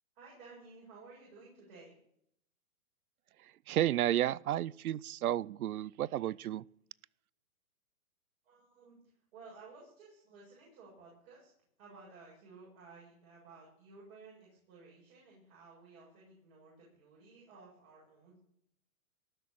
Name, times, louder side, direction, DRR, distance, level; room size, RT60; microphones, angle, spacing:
voice 1, 0.1-1.9 8.4-11.5 11.8-18.4, right 4 dB, 40° right, 7.3 m, -55 dB
voice 2, 3.4-6.6, right 12 dB, 85° right, 0.6 m, -32 dB
19.0 x 6.6 x 9.2 m
hypercardioid pair, 155°, 42 cm